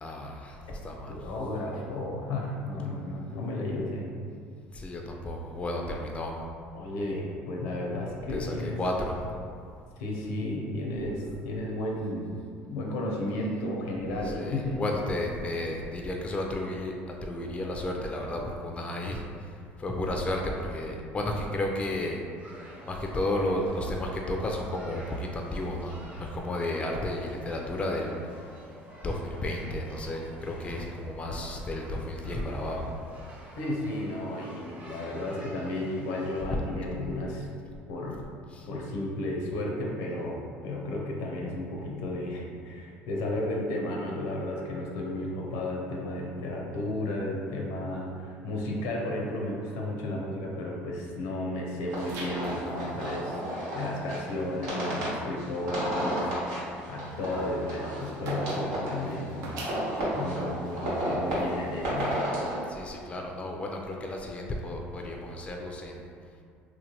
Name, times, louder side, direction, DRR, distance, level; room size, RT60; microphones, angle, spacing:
voice 1, 0.0-1.3 4.7-6.3 8.3-9.4 14.2-16.9 17.2-22.2 22.9-28.2 29.0-33.0 38.5-38.7 62.7-66.1, left 1 dB, 20° left, 1 dB, 0.3 m, -33 dB
voice 2, 1.1-4.1 6.7-8.8 10.0-12.3 12.7-14.8 33.6-37.5 37.9-38.2 38.7-59.5 60.1-62.1, left 1 dB, 80° left, -1 dB, 0.6 m, -33 dB
sound 1, 22.4-36.4, right 1 dB, 25° right, 0.7 m, -49 dB
sound 2, 51.9-62.3, right 1 dB, 70° right, 0.5 m, -47 dB
sound 3, 51.9-62.6, right 1 dB, 90° right, 1.1 m, -33 dB
3.1 x 2.1 x 2.8 m, 2.3 s
supercardioid pair, 90°, 5 cm